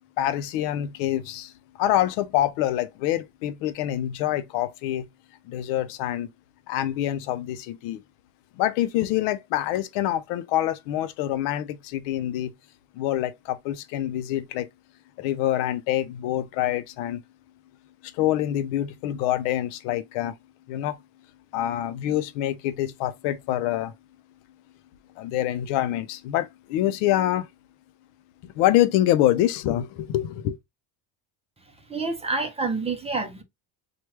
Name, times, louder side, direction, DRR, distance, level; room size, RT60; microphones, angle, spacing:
voice 1, 0.2-1.5 1.8-5.1 5.5-6.3 6.7-8.0 8.6-12.5 12.9-14.7 15.2-17.2 18.0-20.3 20.7-21.0 21.5-23.9 25.2-27.5 28.4-30.6, left 13 dB, 85° left, 0.6 m, -26 dB
voice 2, 31.9-33.4, right 3 dB, 15° right, 0.5 m, -28 dB
3.1 x 2.3 x 3.1 m
cardioid pair, 125°, 42 cm